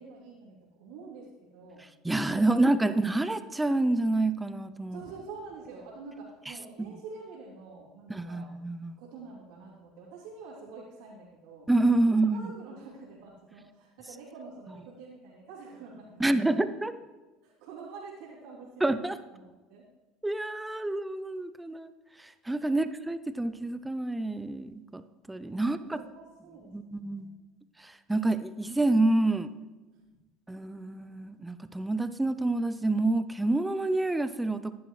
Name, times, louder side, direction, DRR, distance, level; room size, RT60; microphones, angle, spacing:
voice 1, 0.0-1.8 2.5-3.1 4.9-8.5 9.0-11.7 12.1-16.5 17.4-19.9 22.7-22.8 25.6-27.4 29.9-30.1, right 4 dB, 75° right, -8 dB, 3.2 m, -47 dB
voice 2, 2.0-5.0 6.8-6.9 8.1-9.0 11.7-12.5 16.2-16.9 18.8-19.2 20.2-21.9 22.5-25.0 25.3-26.0 26.7-27.3 27.8-29.5 30.5-34.7, right 2 dB, 10° right, 12 dB, 0.7 m, -27 dB
15.5 x 11.0 x 3.3 m, 1.2 s
hypercardioid pair, 80°, 0 cm